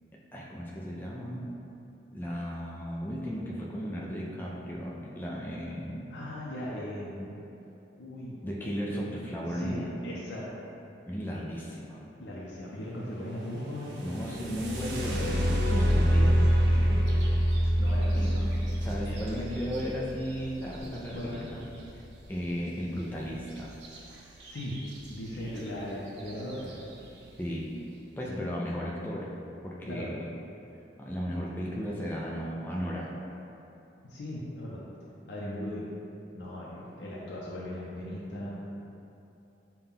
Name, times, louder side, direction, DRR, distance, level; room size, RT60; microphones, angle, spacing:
voice 1, 0.3-1.5 2.1-6.1 8.4-10.0 11.0-12.1 14.0-17.0 18.1-18.3 18.7-21.6 22.3-23.8 27.4-27.8 28.2-29.3 29.6-30.3 31.0-33.1, equal, 10° left, -4 dB, 0.3 m, -35 dB
voice 2, 6.1-7.4 8.0-8.4 9.5-10.5 12.2-14.1 16.8-17.0 17.8-18.5 19.0-19.2 21.2-21.4 23.9-24.7 25.1-26.7 28.3-28.5 29.9-30.1 34.0-34.8 35.3-35.8 36.3-38.6, left 1 dB, 80° left, -6 dB, 0.6 m, -38 dB
sound 1, 13.9-21.8 23.8-24.0 24.4-25.0 25.6-25.7 26.2-26.5, equal, 75° right, 0.6 m, -26 dB
5.7 x 2.2 x 3.6 m, 2.8 s
head